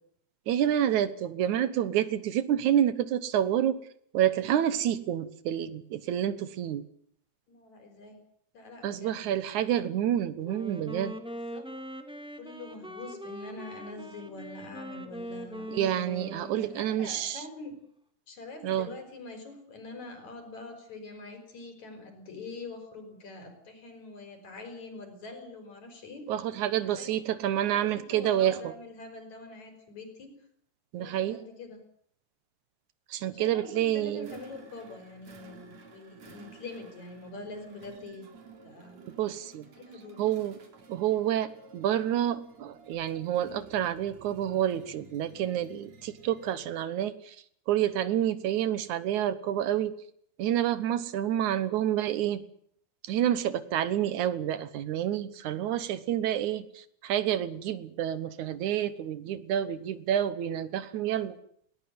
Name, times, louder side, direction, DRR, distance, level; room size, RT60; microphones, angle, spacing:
voice 1, 0.5-3.8 4.1-6.8 8.8-11.1 15.7-17.4 18.6-18.9 26.3-28.7 30.9-31.4 33.1-34.4 39.1-39.7 40.2-40.6 40.9-47.4 47.7-49.9 50.4-52.4 53.0-61.4, right 11 dB, 80° right, 14 dB, 2.6 m, -28 dB
voice 2, 7.5-8.2 8.5-9.3 11.5-11.7 12.4-15.7 16.5-17.7 18.3-26.2 27.0-27.2 27.6-30.3 31.0-31.8 33.2-38.2 38.6-39.0 39.8-40.2, left 3 dB, 65° left, 6 dB, 6.6 m, -44 dB
Wind instrument woodwind instrument, 10.4-17.2, equal, ahead, 1.3 m, -42 dB
sound 1, 34.2-46.7, right 4 dB, 60° right, 4.2 m, -54 dB
19.5 x 18.5 x 9.5 m, 0.65 s
omnidirectional pair, 3.4 m